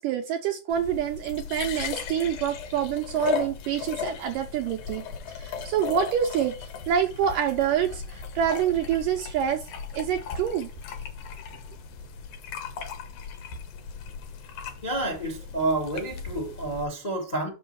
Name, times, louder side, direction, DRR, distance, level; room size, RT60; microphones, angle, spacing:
voice 1, 0.0-5.0 5.3-9.6 9.9-10.7, right 9 dB, 80° right, 2.0 m, -27 dB
sound 1, 0.7-16.9, left 6 dB, 70° left, 2.0 m, -37 dB
voice 2, 14.8-17.5, right 2 dB, 30° left, 0.6 m, -29 dB
6.2 x 5.5 x 4.4 m
omnidirectional pair, 4.5 m